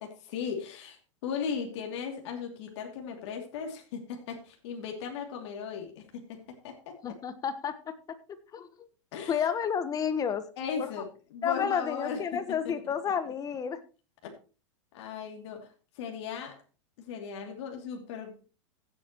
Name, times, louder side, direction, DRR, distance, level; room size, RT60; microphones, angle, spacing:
voice 1, 0.0-7.2 9.1-9.4 10.6-12.2 12.6-12.9 14.2-14.3 14.9-16.6 17.0-18.5, left 6 dB, 60° left, 3 dB, 2.9 m, -37 dB
voice 2, 7.0-8.2 8.5-8.9 9.3-10.4 10.8-10.9 11.4-13.8, left 7 dB, 20° left, 12 dB, 1.2 m, -31 dB
15.5 x 8.3 x 3.0 m, 0.34 s
supercardioid pair, 135°, 16 cm